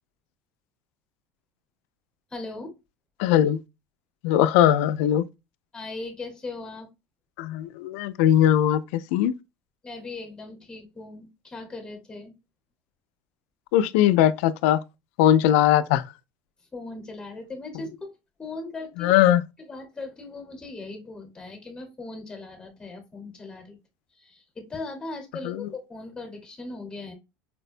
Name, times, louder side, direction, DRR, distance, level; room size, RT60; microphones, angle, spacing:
voice 1, 2.3-2.7 5.7-6.9 9.8-12.3 16.7-18.1 18.4-19.2 19.6-23.8 24.1-27.1, left 3 dB, 15° left, 0.9 m, -38 dB
voice 2, 3.2-3.6 4.2-5.2 7.4-9.3 13.7-14.8 15.2-16.0 19.0-19.4 25.4-25.7, left 11 dB, 85° left, 0.3 m, -20 dB
4.4 x 2.1 x 2.4 m
cardioid pair, 155°, 7 cm